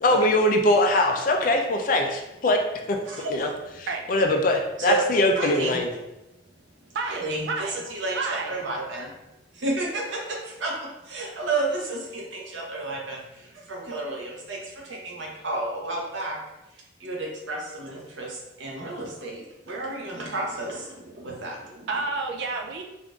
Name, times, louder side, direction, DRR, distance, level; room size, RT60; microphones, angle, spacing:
voice 1, 0.0-2.6 2.9-3.0 3.3-3.5 3.8-5.9, left 1 dB, 45° left, 3 dB, 0.4 m, -22 dB
voice 2, 3.0-3.6 4.8-5.0 5.3-5.8 7.0-9.1 9.5-16.4 17.0-21.9, right 2 dB, 80° right, -2 dB, 0.8 m, -31 dB
voice 3, 6.9-7.8 8.1-8.5 21.9-22.8, right 3 dB, 65° right, 2 dB, 0.3 m, -30 dB
3.6 x 2.5 x 2.3 m, 0.96 s
head